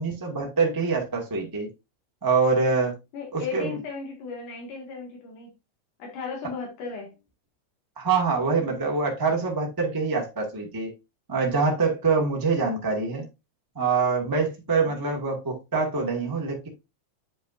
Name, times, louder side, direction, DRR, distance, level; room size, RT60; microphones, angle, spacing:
voice 1, 0.0-1.7 2.2-2.9 3.3-3.8 8.0-10.9 11.3-13.3 13.7-16.7, right 4 dB, 25° right, 0.4 m, -25 dB
voice 2, 3.1-5.5 6.0-7.2 14.8-15.0, left 5 dB, 90° left, 3.2 m, -36 dB
8.9 x 5.4 x 2.4 m
omnidirectional pair, 3.4 m